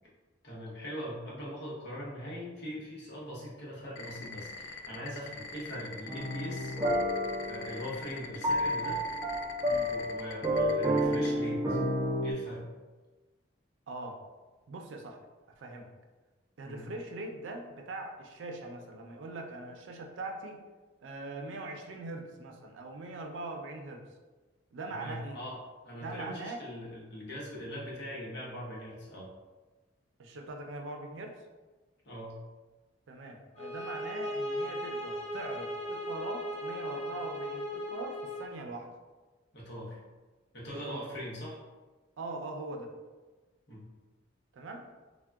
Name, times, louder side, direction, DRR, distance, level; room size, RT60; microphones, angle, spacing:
voice 1, 0.4-6.7 7.5-9.0 9.7-11.8 12.2-12.7 16.6-16.8 24.9-25.6 25.8-29.3 32.0-32.4 39.5-40.0 40.5-41.6 43.7-43.8, equal, 65° left, -6 dB, 0.9 m, -41 dB
sound 1, 4.0-11.3, left 5 dB, 85° left, 0.3 m, -43 dB
sound 2, 6.1-12.3, equal, 20° right, 0.4 m, -30 dB
voice 2, 13.9-14.2 14.7-15.2 15.6-15.9 16.6-20.6 21.0-24.0 24.7-25.4 26.0-26.6 30.2-31.3 33.1-38.9 40.9-41.1 42.2-42.9 44.5-44.9, right 2 dB, 90° right, 3 dB, 0.4 m, -41 dB
sound 3, 33.6-38.5, equal, 35° left, 0.5 m, -37 dB
3.5 x 2.1 x 2.2 m, 1.3 s
head